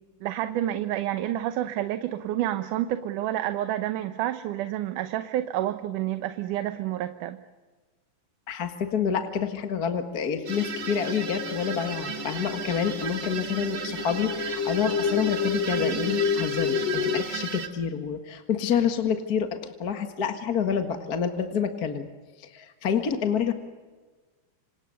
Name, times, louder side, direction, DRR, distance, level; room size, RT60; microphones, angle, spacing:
voice 1, 0.2-7.4, right 12 dB, 80° right, 10 dB, 2.4 m, -29 dB
voice 2, 8.5-22.1 22.4-23.5, left 7 dB, 40° left, 6 dB, 1.6 m, -28 dB
sound 1, 10.3-17.2, left 6 dB, 85° left, 2.5 m, -31 dB
sound 2, 10.4-17.7, right 7 dB, 40° right, 2.0 m, -35 dB
27.5 x 26.5 x 6.6 m, 1.3 s
omnidirectional pair, 3.7 m